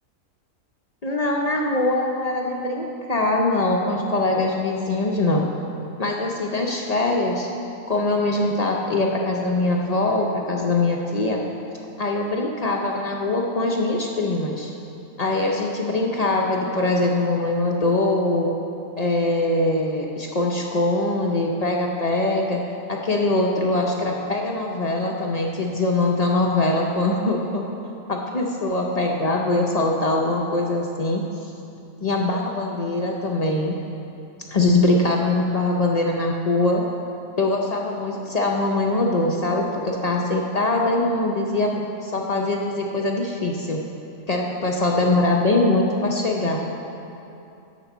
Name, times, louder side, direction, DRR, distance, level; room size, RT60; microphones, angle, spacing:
voice 1, 1.0-5.5 6.0-7.5 7.9-11.4 12.0-14.7 15.2-18.5 19.0-22.6 22.9-27.7 28.1-31.5 32.0-33.8 34.5-36.8 37.4-43.8 44.3-46.7, left 2 dB, 45° left, 0 dB, 0.5 m, -22 dB
7.1 x 6.0 x 7.1 m, 2.8 s
omnidirectional pair, 1.4 m